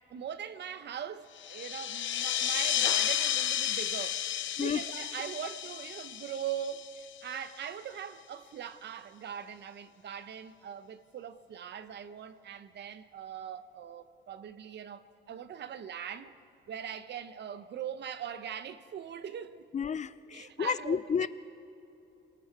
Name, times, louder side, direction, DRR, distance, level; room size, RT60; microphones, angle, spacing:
voice 1, 0.1-16.3 16.7-19.7 20.3-21.3, right 8 dB, 60° right, 0.9 m, -41 dB
sound 1, 1.4-7.5, left 11 dB, 70° left, 1.0 m, -32 dB
voice 2, 19.7-21.3, left 6 dB, 35° left, 0.6 m, -31 dB
30.0 x 19.5 x 4.7 m
cardioid pair, 90°, 20 cm